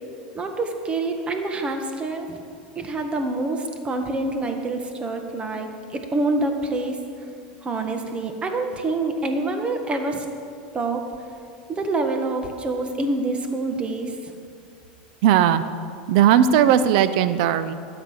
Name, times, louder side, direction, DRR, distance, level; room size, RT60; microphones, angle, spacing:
voice 1, 0.3-2.4 2.7-7.0 7.6-10.2 10.7-11.0 11.7-14.3, right 2 dB, 25° right, 5 dB, 1.7 m, -26 dB
voice 2, 15.2-15.6 16.1-17.7, right 10 dB, 65° right, 12 dB, 0.7 m, -17 dB
12.5 x 8.0 x 6.9 m, 2.3 s
hypercardioid pair, 100°, 5 cm